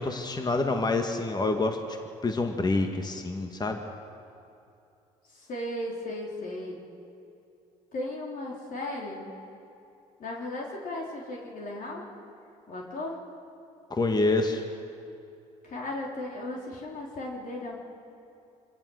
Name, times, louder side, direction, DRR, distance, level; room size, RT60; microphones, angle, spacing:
voice 1, 0.0-2.0 2.2-3.8 13.9-14.6, left 2 dB, 25° left, 4 dB, 1.8 m, -27 dB
voice 2, 5.3-6.8 7.9-9.3 10.2-12.1 12.7-13.2 15.6-17.8, left 1 dB, 55° left, -2 dB, 4.0 m, -36 dB
26.0 x 16.5 x 6.5 m, 2.7 s
hypercardioid pair, 60°, 17 cm